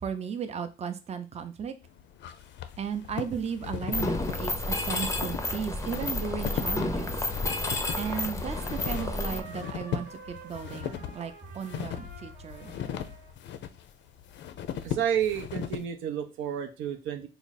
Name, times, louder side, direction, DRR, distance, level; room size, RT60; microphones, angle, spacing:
voice 1, 0.0-1.7 2.8-7.1 8.0-12.7, right 7 dB, 35° right, 8 dB, 0.5 m, -35 dB
sound 1, 1.8-15.8, left 9 dB, 65° left, 0.4 m, -38 dB
Mechanisms, 3.9-9.4, left 2 dB, 15° left, 0.5 m, -31 dB
Trumpet, 6.0-13.3, right 5 dB, 55° right, 0.9 m, -48 dB
voice 2, 14.8-17.3, right 9 dB, 80° right, 6 dB, 0.5 m, -30 dB
3.3 x 2.0 x 4.0 m, 0.31 s
cardioid pair, 90°, 20 cm